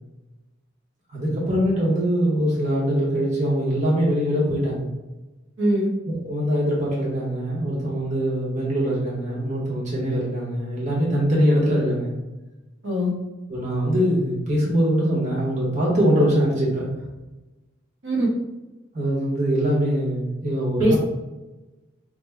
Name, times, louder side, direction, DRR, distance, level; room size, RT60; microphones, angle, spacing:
voice 1, 1.1-4.9 6.2-12.2 13.5-17.0 18.9-21.0, equal, 40° right, -5 dB, 1.0 m, -22 dB
voice 2, 5.6-5.9 12.8-13.1 18.0-18.3 20.8-21.0, equal, 70° right, -3 dB, 1.1 m, -21 dB
4.9 x 2.1 x 3.4 m, 1.1 s
head